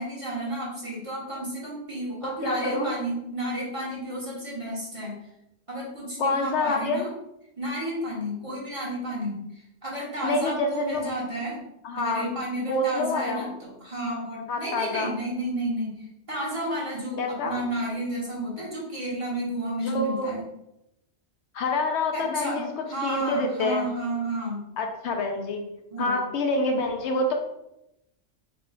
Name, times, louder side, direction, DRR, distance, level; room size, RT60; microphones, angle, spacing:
voice 1, 0.0-5.2 5.7-7.1 7.6-11.7 11.9-20.4 22.1-24.6 25.9-26.2, right 1 dB, 30° right, -6 dB, 1.4 m, -32 dB
voice 2, 2.2-3.0 6.2-7.1 10.2-11.1 11.8-13.4 14.5-15.1 17.2-17.6 19.8-20.3 21.5-23.9 24.8-25.6 26.0-27.3, left 2 dB, 75° left, 3 dB, 0.9 m, -27 dB
4.2 x 4.2 x 2.2 m, 0.84 s
omnidirectional pair, 1.2 m